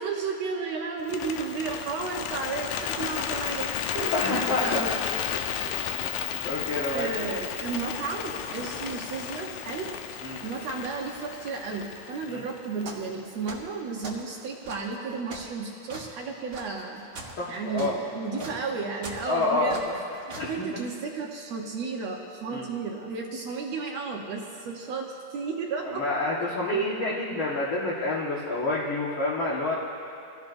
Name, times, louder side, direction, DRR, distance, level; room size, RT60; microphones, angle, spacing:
voice 1, 0.0-5.0 6.9-17.0 17.5-19.8 20.3-26.1 26.4-27.1, right 4 dB, 65° right, 0 dB, 1.9 m, -33 dB
Bird, 1.0-13.2, left 9 dB, 85° left, 2.3 m, -33 dB
voice 2, 4.0-4.9 6.4-7.3 10.2-10.4 12.3-12.4 17.4-18.1 18.3-18.5 19.3-19.8 20.4-20.5 22.5-22.7 25.8-29.7, left 2 dB, 50° left, -6 dB, 1.8 m, -28 dB
sound 1, 12.8-13.1 13.4-14.3 14.6-20.5, right 2 dB, 40° right, 1.7 m, -42 dB
25.5 x 17.0 x 2.6 m, 2.6 s
omnidirectional pair, 3.8 m